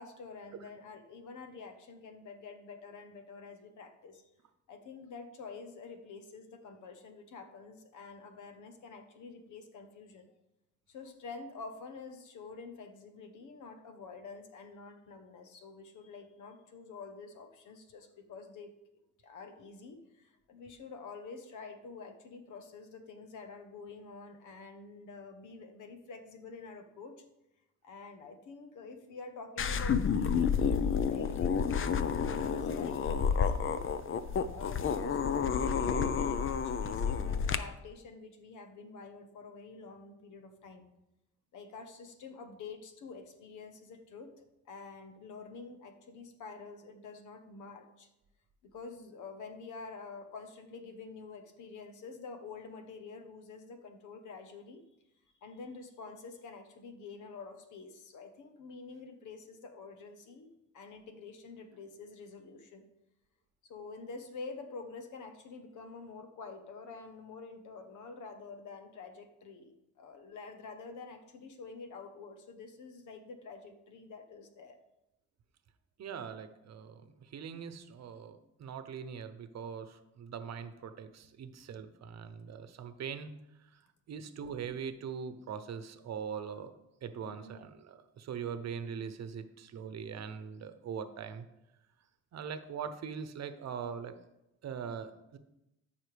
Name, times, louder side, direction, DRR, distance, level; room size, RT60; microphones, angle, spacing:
voice 1, 0.0-4.2 4.7-10.3 10.9-18.7 19.2-27.2 27.8-33.9 34.5-40.9 41.5-48.1 48.6-54.8 55.4-60.5 60.7-62.8 63.6-74.8 87.2-87.7, left 4 dB, 80° left, 6 dB, 1.2 m, -48 dB
sound 1, 29.6-37.6, left 6 dB, 45° left, 0.6 m, -30 dB
voice 2, 76.0-83.3 84.1-86.7 87.0-91.5 92.3-94.1 94.6-95.4, right 7 dB, 60° right, 10 dB, 0.9 m, -41 dB
13.5 x 5.6 x 3.4 m, 0.89 s
cardioid pair, 90°, 30 cm